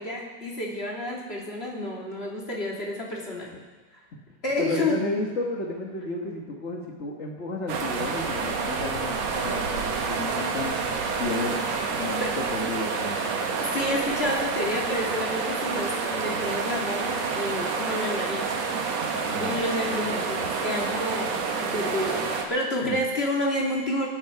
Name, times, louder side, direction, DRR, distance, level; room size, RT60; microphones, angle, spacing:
voice 1, 0.0-3.5 4.4-5.0 12.2-12.3 13.6-18.5 19.4-24.1, left 1 dB, 20° left, -2 dB, 2.5 m, -29 dB
voice 2, 4.6-10.8 11.1-13.4 19.2-19.6 22.8-23.0, left 2 dB, 45° left, 0 dB, 0.8 m, -32 dB
sound 1, 7.7-22.5, right 5 dB, 65° right, 2.5 m, -28 dB
24.0 x 9.1 x 5.7 m, 1.4 s
omnidirectional pair, 3.4 m